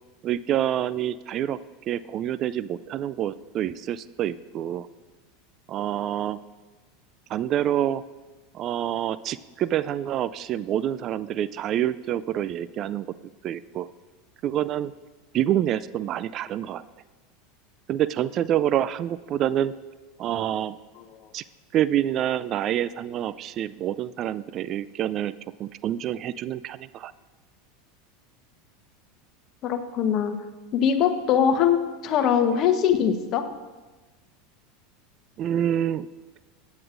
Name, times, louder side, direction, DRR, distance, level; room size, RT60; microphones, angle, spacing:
voice 1, 0.2-1.6 1.9-4.9 5.7-6.4 7.3-8.0 8.5-13.1 13.4-13.9 14.4-14.9 15.3-16.8 17.9-19.7 20.2-20.8 21.3-21.4 21.7-25.3 25.6-27.1 35.4-36.1, right 11 dB, 45° right, 17 dB, 0.3 m, -27 dB
voice 2, 29.6-30.4 30.7-31.8 32.0-33.4, left 8 dB, 45° left, 8 dB, 1.0 m, -22 dB
16.0 x 9.6 x 2.6 m, 1.2 s
hypercardioid pair, 85°, 0 cm